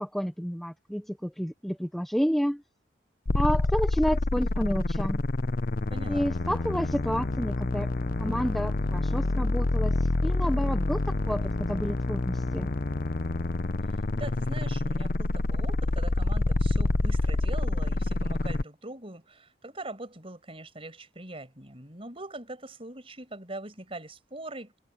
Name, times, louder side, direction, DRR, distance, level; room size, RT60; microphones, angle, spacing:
voice 1, 0.0-2.6 3.3-5.2 6.1-7.9 8.2-12.7, equal, ahead, 0.7 m, -30 dB
sound 1, 3.3-18.6, left 2 dB, 55° left, 0.8 m, -27 dB
voice 2, 5.9-6.3 13.9-24.8, right 2 dB, 35° right, 5.9 m, -42 dB
head